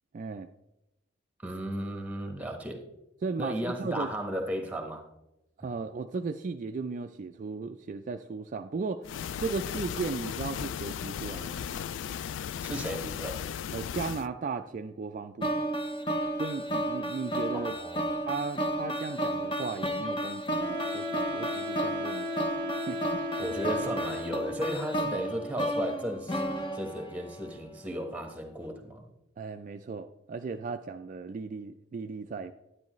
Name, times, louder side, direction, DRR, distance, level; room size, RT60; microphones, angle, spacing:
voice 1, 0.1-0.5 3.2-4.1 5.6-9.1 9.4-11.8 13.7-15.7 16.4-17.8 18.3-22.3 22.9-23.2 29.4-32.5, right 4 dB, 45° right, 6 dB, 0.3 m, -36 dB
voice 2, 1.4-2.8 3.4-5.1 12.6-13.5 17.5-18.2 23.4-29.1, equal, 10° right, 5 dB, 1.1 m, -35 dB
sound 1, 9.0-14.3, left 8 dB, 70° left, 0.3 m, -36 dB
sound 2, 15.4-27.6, right 1 dB, 25° left, 0.8 m, -33 dB
Wind instrument woodwind instrument, 20.6-24.7, left 2 dB, 25° right, 0.8 m, -36 dB
10.5 x 9.5 x 3.1 m, 0.92 s
head